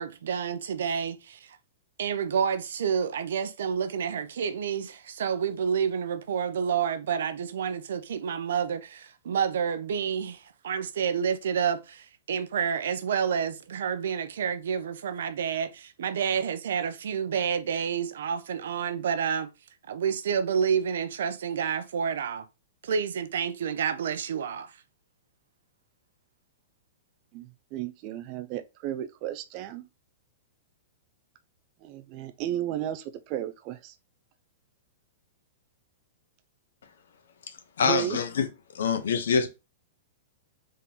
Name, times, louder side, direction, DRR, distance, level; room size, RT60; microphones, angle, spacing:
voice 1, 0.0-1.6 2.0-19.5 19.9-22.4 22.8-24.7, right 7 dB, 75° right, 0.6 m, -29 dB
voice 2, 27.3-29.9 31.8-33.9 37.8-38.2, right 12 dB, 30° right, 0.3 m, -34 dB
voice 3, 37.8-38.5 38.7-39.5, left 6 dB, 90° left, 0.8 m, -25 dB
3.7 x 2.8 x 3.8 m
supercardioid pair, 170°, 0 cm